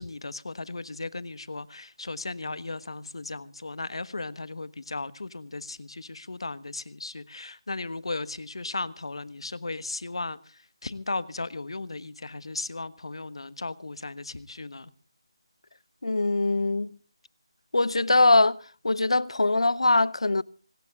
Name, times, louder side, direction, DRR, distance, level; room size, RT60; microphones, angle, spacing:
voice 1, 0.0-14.9, left 3 dB, 70° left, 1.3 m, -36 dB
voice 2, 16.0-16.9 17.7-18.6 18.8-20.4, left 2 dB, 85° left, 0.7 m, -22 dB
25.5 x 19.0 x 2.4 m
figure-of-eight pair, 170°, 3 cm